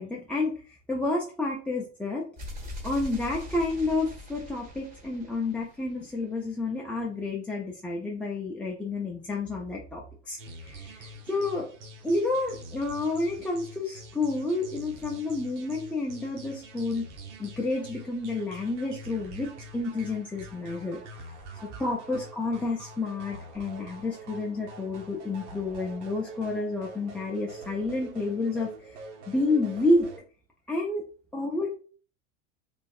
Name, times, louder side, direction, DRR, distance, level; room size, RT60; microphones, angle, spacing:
voice 1, 0.0-2.3 2.8-11.7 12.0-17.1 17.4-21.0 21.6-29.0 29.3-30.1 30.7-31.0 31.3-31.8, left 2 dB, 5° left, -3 dB, 0.3 m, -30 dB
sound 1, 2.4-6.2, left 1 dB, 25° right, 1.5 m, -42 dB
sound 2, 10.4-30.2, right 2 dB, 75° right, 0.9 m, -45 dB
3.2 x 2.5 x 2.3 m, 0.40 s
supercardioid pair, 110°, 36 cm